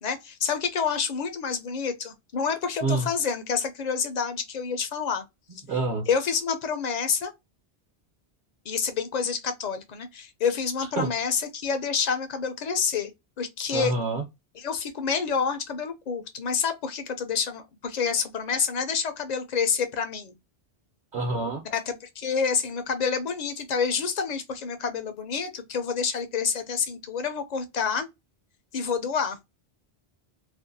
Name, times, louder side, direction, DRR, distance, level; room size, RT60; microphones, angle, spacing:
voice 1, 0.0-5.2 6.1-7.3 8.7-13.1 13.4-13.9 14.6-20.3 21.7-28.1 28.7-29.5, left 6 dB, 55° left, 0.5 m, -28 dB
voice 2, 5.7-6.0 10.8-11.1 13.7-14.2 21.1-21.6, right 3 dB, 55° right, 0.8 m, -27 dB
2.5 x 2.1 x 2.5 m
omnidirectional pair, 1.1 m